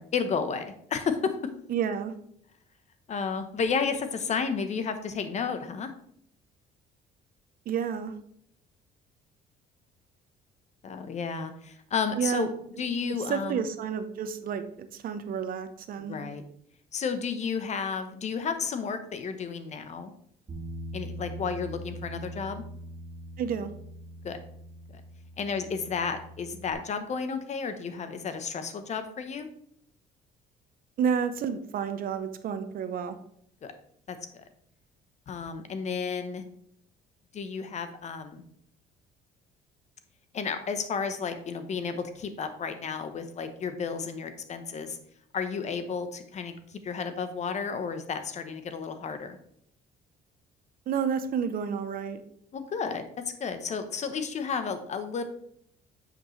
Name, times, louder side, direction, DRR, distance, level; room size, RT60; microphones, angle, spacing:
voice 1, 0.0-1.3 3.1-5.9 10.8-12.5 12.8-13.6 16.0-16.4 16.9-20.1 20.9-22.6 24.2-24.4 25.4-29.5 33.6-33.7 34.1-34.2 35.3-36.4 37.3-38.4 40.3-45.0 45.3-49.4 52.5-53.0 53.4-55.2, left 5 dB, 45° left, 9 dB, 0.9 m, -32 dB
voice 2, 1.7-2.1 7.7-8.2 12.2-12.5 13.3-16.2 23.4-23.7 31.0-33.2 50.9-52.2, right 7 dB, 60° right, 10 dB, 0.8 m, -30 dB
Bass guitar, 20.5-26.7, right 1 dB, 35° right, 2.1 m, -42 dB
8.9 x 5.3 x 3.2 m, 0.68 s
cardioid pair, 110°, 17 cm